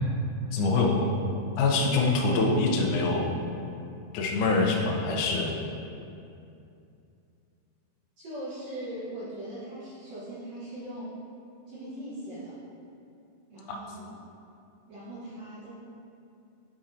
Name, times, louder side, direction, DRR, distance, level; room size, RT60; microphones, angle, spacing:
voice 1, 0.5-1.1 1.6-3.3 4.1-5.5 13.7-13.8, left 3 dB, 85° left, -1 dB, 1.7 m, -24 dB
voice 2, 8.2-11.1 11.7-12.5 13.5-14.2 14.9-15.7, right 1 dB, 70° right, -10 dB, 1.6 m, -40 dB
9.0 x 4.2 x 2.5 m, 2.6 s
omnidirectional pair, 4.4 m